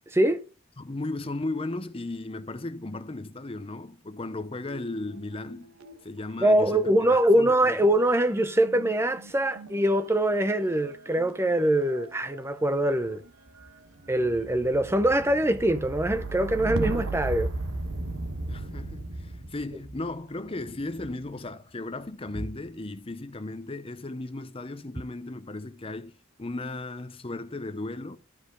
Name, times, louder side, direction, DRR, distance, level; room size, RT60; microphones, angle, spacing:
voice 1, 0.1-0.4 6.4-13.2 14.1-17.5, right 1 dB, 10° right, 0.5 m, -23 dB
voice 2, 0.8-5.7 6.0-7.8 18.5-26.1 26.4-28.2, left 2 dB, 25° left, 0.7 m, -36 dB
sound 1, 4.6-6.0 6.2-21.3 22.1-22.6, right 2 dB, 90° right, 1.3 m, -37 dB
12.5 x 5.1 x 4.9 m
head